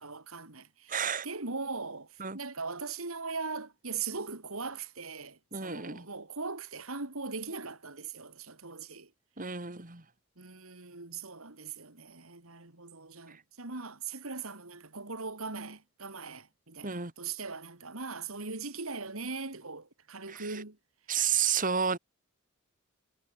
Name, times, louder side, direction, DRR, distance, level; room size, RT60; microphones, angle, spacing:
voice 1, 0.0-9.1 10.4-20.8, right 4 dB, 75° right, 3.0 m, -40 dB
voice 2, 0.9-1.3 2.2-2.4 5.5-6.1 9.4-10.0 16.8-17.1 20.3-20.5 21.1-22.0, right 7 dB, 40° right, 2.6 m, -31 dB
head